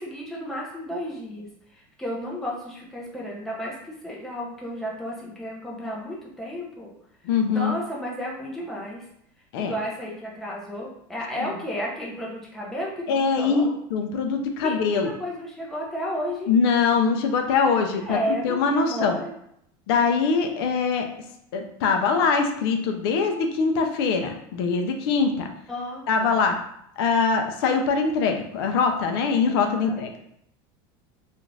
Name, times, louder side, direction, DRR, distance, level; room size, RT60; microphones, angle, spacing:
voice 1, 0.0-6.9 7.3-9.0 9.6-13.7 14.6-16.5 17.9-19.3 25.7-26.3 29.4-30.0, equal, 5° left, -4 dB, 0.5 m, -33 dB
voice 2, 7.3-7.7 9.5-9.7 13.1-15.1 16.5-19.2 19.9-21.1 21.5-25.5 26.1-26.6 27.0-30.1, left 5 dB, 80° left, 4 dB, 0.5 m, -23 dB
2.5 x 2.4 x 3.1 m, 0.73 s
supercardioid pair, 160°, 13 cm